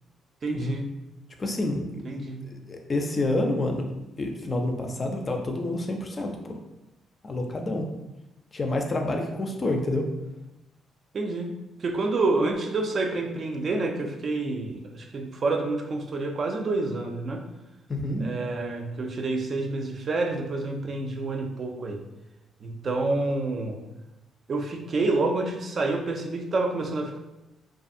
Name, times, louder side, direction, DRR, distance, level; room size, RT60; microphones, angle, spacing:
voice 1, 0.4-0.9 2.0-2.4 11.1-11.5 11.8-17.4 18.2-22.0 22.6-23.8 24.5-27.2, right 3 dB, 45° right, 3 dB, 0.3 m, -28 dB
voice 2, 1.4-2.1 2.4-3.9 4.2-6.6 7.2-7.9 8.5-10.1 17.9-18.3, left 2 dB, 35° left, 3 dB, 0.4 m, -28 dB
2.6 x 2.3 x 2.5 m, 0.96 s
cardioid pair, 90°, 0 cm